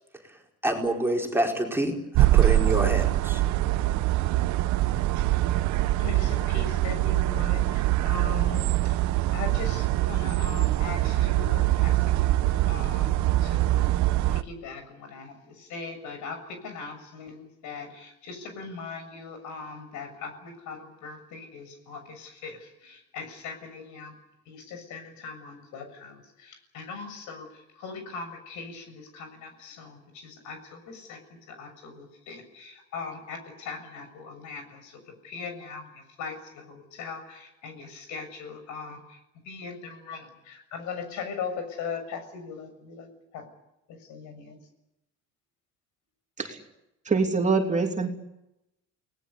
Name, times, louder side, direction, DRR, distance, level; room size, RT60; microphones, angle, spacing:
voice 1, 0.6-3.4, right 1 dB, 5° right, 0 dB, 4.7 m, -27 dB
sound 1, 2.1-14.4, right 15 dB, 65° right, 1.2 m, -23 dB
voice 2, 6.0-7.7 8.1-8.6 9.3-13.9 14.5-14.8 15.1-15.3 15.7-16.4 16.6-20.8 21.0-22.5 23.1-24.1 24.5-26.1 26.7-27.4 27.8-28.8 29.1-29.9 30.4-30.6 30.9-31.2 31.6-34.6 35.3-35.8 36.2-36.3 37.0-37.2 37.6-39.0 39.5-40.2 40.7-41.5 41.8-43.1 44.1-44.5, left 5 dB, 70° left, 7 dB, 7.1 m, -39 dB
voice 3, 47.0-48.1, right 4 dB, 25° right, 3 dB, 3.0 m, -24 dB
29.5 x 19.5 x 8.3 m, 0.89 s
cardioid pair, 120°, 31 cm